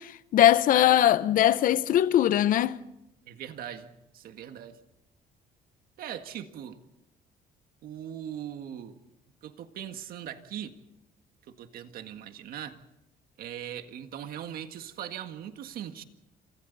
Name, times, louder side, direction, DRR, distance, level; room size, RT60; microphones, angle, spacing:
voice 1, 0.0-2.8, left 11 dB, 60° left, 0.8 m, -21 dB
voice 2, 3.3-4.8 6.0-6.8 7.8-9.0 9.4-10.8 11.5-12.8 13.4-16.0, right 10 dB, 70° right, 1.8 m, -40 dB
28.5 x 27.0 x 4.1 m
cardioid pair, 140°, 16 cm